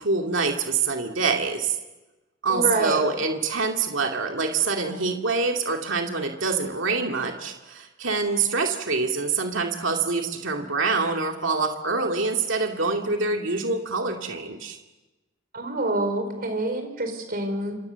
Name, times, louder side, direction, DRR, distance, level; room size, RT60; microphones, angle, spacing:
voice 1, 0.0-1.8 2.4-14.8, right 4 dB, 65° right, 2 dB, 2.4 m, -25 dB
voice 2, 2.5-3.0 15.5-17.8, right 2 dB, 45° right, 6 dB, 4.7 m, -26 dB
28.0 x 27.5 x 7.0 m, 1.1 s
head